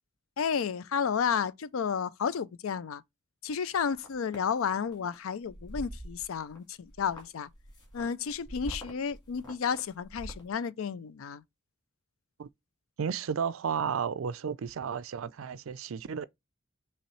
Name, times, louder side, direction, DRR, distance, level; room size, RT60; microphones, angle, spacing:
voice 1, 0.4-3.0 3.4-7.5 7.9-11.4, left 6 dB, 80° left, 0.4 m, -32 dB
sound 1, 3.7-4.4 4.9-5.2 5.4-6.6 6.8-10.5, equal, 20° left, 1.8 m, -44 dB
voice 2, 13.0-16.2, right 7 dB, 75° right, 0.4 m, -33 dB
5.6 x 3.1 x 3.0 m
head